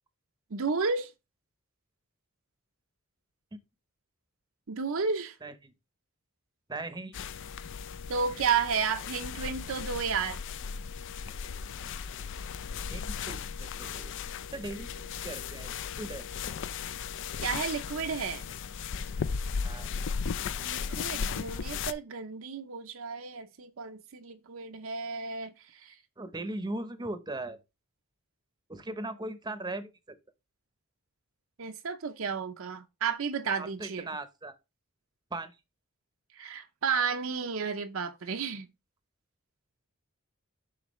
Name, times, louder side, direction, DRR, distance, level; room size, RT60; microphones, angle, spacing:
voice 1, 0.5-1.1 4.7-5.3 8.1-10.4 17.4-18.5 20.6-25.9 31.6-34.1 36.4-38.7, right 5 dB, 65° right, 0.6 m, -32 dB
voice 2, 5.4-5.7 6.7-7.2 11.2-11.4 12.9-14.1 14.5-16.2 19.6-19.9 26.2-27.6 28.7-29.9 33.6-34.6 35.3-35.5, right 2 dB, 20° right, 0.7 m, -39 dB
sound 1, 7.1-21.9, left 6 dB, 60° left, 0.4 m, -36 dB
7.8 x 5.9 x 3.1 m
head